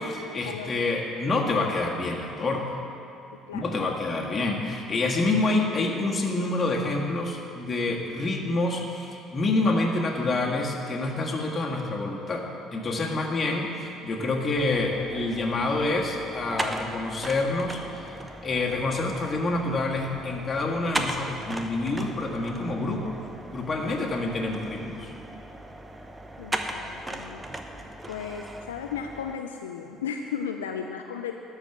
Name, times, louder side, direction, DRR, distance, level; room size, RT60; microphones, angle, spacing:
voice 1, 0.0-2.8 3.5-18.1 18.4-23.2 23.5-25.1, left 2 dB, 35° left, 0 dB, 1.6 m, -27 dB
voice 2, 3.3-3.6 26.4-31.3, left 7 dB, 85° left, 4 dB, 0.4 m, -35 dB
sound 1, 14.5-29.4, right 1 dB, 15° right, 0.9 m, -38 dB
12.0 x 4.9 x 7.0 m, 2.8 s
hypercardioid pair, 55°, 0 cm